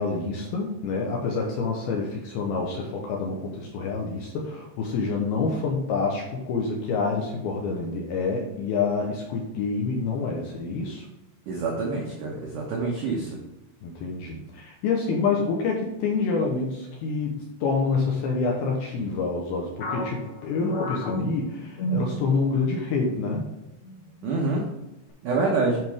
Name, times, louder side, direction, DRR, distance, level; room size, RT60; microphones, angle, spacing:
voice 1, 0.0-11.1 13.8-23.5, left 4 dB, 75° left, 0 dB, 2.5 m, -27 dB
voice 2, 11.5-13.4 24.2-24.6 25.2-25.8, right 3 dB, 90° right, -1 dB, 1.7 m, -26 dB
sound 1, 19.8-22.7 23.0-23.2 23.8-24.3, equal, 55° left, 3.4 m, -31 dB
10.5 x 5.1 x 3.6 m, 1.0 s
omnidirectional pair, 5.4 m